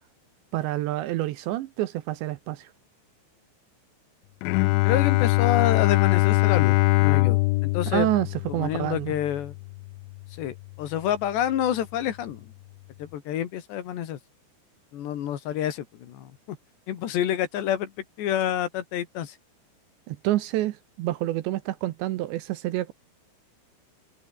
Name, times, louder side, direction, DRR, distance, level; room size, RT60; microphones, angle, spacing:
voice 1, 0.5-2.7 7.9-9.2 20.1-22.9, right 15 dB, 75° right, 2.9 m, -28 dB
Bowed string instrument, 4.4-10.1, left 24 dB, 85° left, 2.8 m, -23 dB
voice 2, 4.8-8.1 8.5-9.5 10.4-12.5 13.0-14.2 14.9-16.3 16.9-17.9 18.2-19.4, left 11 dB, 65° left, 3.9 m, -28 dB
omnidirectional pair, 5.8 m